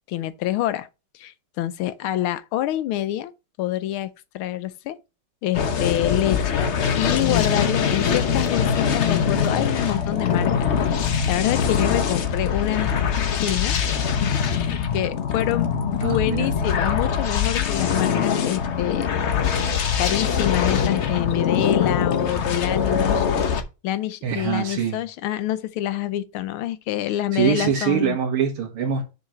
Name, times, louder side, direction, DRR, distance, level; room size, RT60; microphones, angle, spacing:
voice 1, 0.1-0.9 1.1-3.3 3.6-5.0 5.4-12.9 13.3-13.8 14.2-19.3 20.0-23.3 23.8-28.2, left 13 dB, 85° left, 1.5 m, -27 dB
sound 1, 5.5-23.6, left 7 dB, 55° left, 0.7 m, -23 dB
voice 2, 16.0-16.5 24.2-25.0 27.3-29.0, right 8 dB, 90° right, 2.5 m, -23 dB
6.5 x 4.1 x 5.8 m
omnidirectional pair, 2.3 m